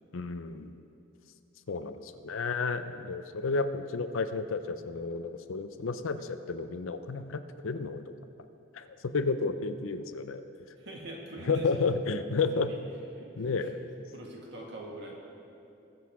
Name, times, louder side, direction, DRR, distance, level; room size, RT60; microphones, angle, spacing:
voice 1, 0.1-0.7 1.7-8.0 8.7-10.4 11.5-12.7 13.4-13.7, left 4 dB, 90° left, 10 dB, 0.6 m, -31 dB
voice 2, 10.8-11.9 12.5-12.8 13.2-13.7 14.1-15.1, right 1 dB, 60° right, -1 dB, 1.8 m, -44 dB
20.0 x 7.8 x 3.6 m, 2.7 s
head